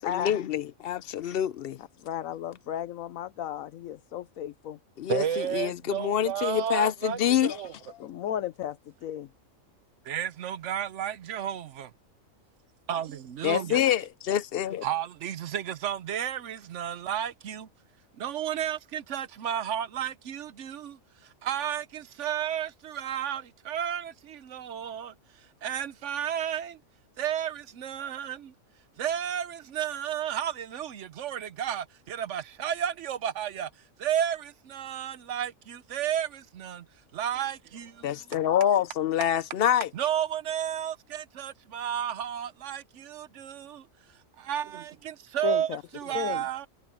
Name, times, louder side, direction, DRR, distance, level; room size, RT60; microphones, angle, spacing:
voice 1, 0.0-1.8 5.0-7.6 13.4-14.8 38.0-39.9, left 10 dB, 60° left, 0.6 m, -26 dB
voice 2, 2.0-4.8 8.0-9.3 45.4-45.8 46.1-46.4, left 10 dB, 80° left, 1.1 m, -34 dB
voice 3, 5.1-7.7 10.0-11.9 12.9-13.8 14.8-17.7 18.2-26.8 27.2-28.5 29.0-36.9 37.1-38.1 39.9-46.7, right 10 dB, 65° right, 1.0 m, -32 dB
omnidirectional pair, 1.4 m